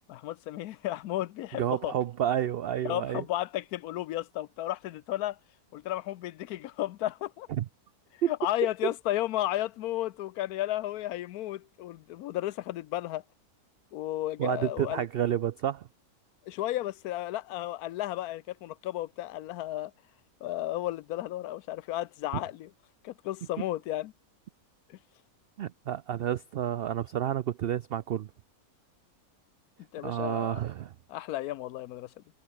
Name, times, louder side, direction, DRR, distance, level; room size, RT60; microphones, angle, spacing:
voice 1, 0.1-1.9 2.8-5.4 5.7-7.5 8.3-13.2 13.9-15.1 16.5-19.9 20.4-22.7 23.0-24.1 24.9-25.0 29.9-30.6 31.1-32.1, left 14 dB, 85° left, 1.1 m, -33 dB
voice 2, 1.5-3.2 7.5-7.7 8.2-8.3 8.8-8.9 14.4-15.9 25.6-28.3 30.0-30.9, right 10 dB, 85° right, 0.5 m, -30 dB
omnidirectional pair, 1.5 m